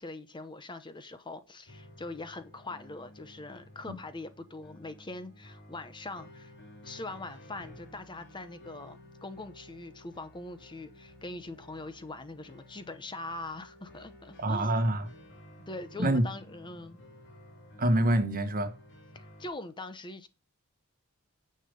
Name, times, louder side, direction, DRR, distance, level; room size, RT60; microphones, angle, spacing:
voice 1, 0.0-6.5 6.8-14.7 15.7-17.0 19.1-20.3, left 2 dB, 20° left, 0.9 m, -42 dB
sound 1, 1.7-19.5, left 1 dB, 55° left, 3.2 m, -53 dB
voice 2, 14.4-15.1 16.0-16.2 17.8-18.7, right 1 dB, 40° right, 1.4 m, -26 dB
9.8 x 6.6 x 5.3 m
head